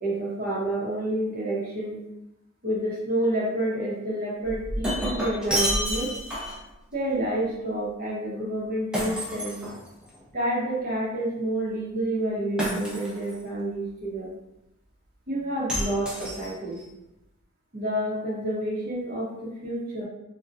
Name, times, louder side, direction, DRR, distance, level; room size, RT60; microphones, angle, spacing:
voice 1, 0.0-2.0 2.6-6.1 6.9-9.6 10.3-14.3 15.3-16.8 17.7-20.0, right 1 dB, 40° right, -5 dB, 0.7 m, -29 dB
Shatter, 4.4-6.7 8.9-10.2 12.6-13.4 15.7-16.8, equal, 5° right, 0.4 m, -29 dB
2.5 x 2.1 x 2.3 m, 0.91 s
head